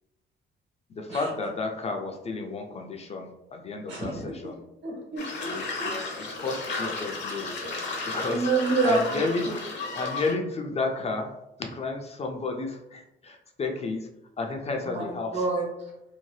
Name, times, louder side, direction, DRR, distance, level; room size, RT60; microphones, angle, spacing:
voice 1, 0.9-4.6 5.5-7.6 8.1-8.5 8.8-9.4 9.9-11.4 11.7-14.1 14.4-15.5, left 3 dB, 30° left, 3 dB, 0.4 m, -32 dB
voice 2, 3.9-4.2 4.8-6.0 8.3-9.5 14.9-15.0 15.3-15.9, right 3 dB, 65° right, -2 dB, 1.3 m, -28 dB
sound 1, 5.2-10.3, left 3 dB, 65° left, 0.8 m, -33 dB
2.8 x 2.1 x 3.1 m, 0.88 s
cardioid pair, 90°, 20 cm